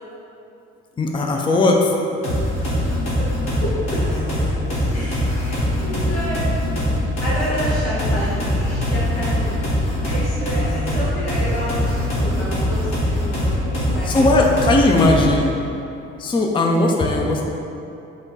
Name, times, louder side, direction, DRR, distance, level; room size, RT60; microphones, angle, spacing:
voice 1, 1.0-2.0 13.8-15.6 16.2-17.4, left 2 dB, 15° left, 1 dB, 0.4 m, -18 dB
sound 1, 2.2-15.4, left 1 dB, 55° left, 1.4 m, -22 dB
voice 2, 2.5-2.9 3.2-3.7 4.9-6.5 7.2-14.3, equal, 90° left, -10 dB, 1.0 m, -30 dB
5.1 x 2.2 x 3.7 m, 2.8 s
figure-of-eight pair, 45°, 33 cm